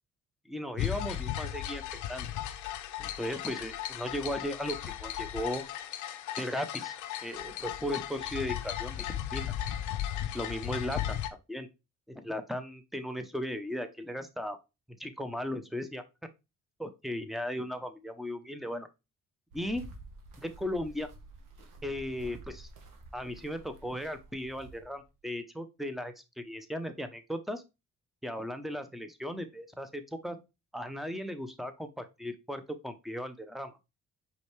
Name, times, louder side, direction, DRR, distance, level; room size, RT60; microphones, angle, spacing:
voice 1, 0.5-2.3 3.0-5.6 6.4-7.0 7.2-9.5 10.3-11.2 11.5-11.7 12.1-14.6 15.0-16.0 16.8-18.9 19.5-19.8 20.4-21.1 21.8-22.7 23.1-27.6 28.2-30.4 30.7-33.8, left 1 dB, ahead, 8 dB, 0.7 m, -36 dB
sound 1, 0.8-11.3, left 11 dB, 75° left, 0.6 m, -36 dB
sound 2, 19.5-25.1, right 2 dB, 85° right, 1.2 m, -50 dB
5.0 x 3.3 x 3.2 m, 0.25 s
cardioid pair, 90°, 30 cm